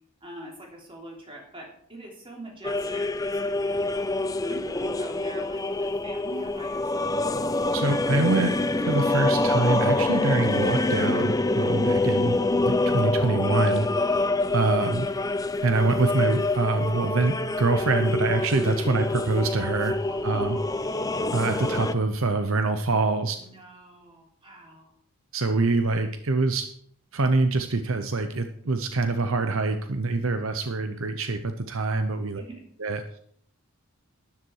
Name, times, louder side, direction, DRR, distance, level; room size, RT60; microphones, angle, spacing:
voice 1, 0.2-7.1 20.1-20.9 23.3-24.9 32.3-32.7, right 1 dB, 25° right, -1 dB, 3.3 m, -44 dB
sound 1, 2.6-21.9, left 2 dB, 15° left, 0.4 m, -26 dB
voice 2, 7.7-12.4 12.7-14.2 14.5-15.1 15.6-20.0 20.2-20.6 21.3-23.4 25.3-26.7 27.1-32.4 32.8-33.2, right 3 dB, 65° right, 8 dB, 0.8 m, -25 dB
12.5 x 10.5 x 4.7 m, 0.65 s
head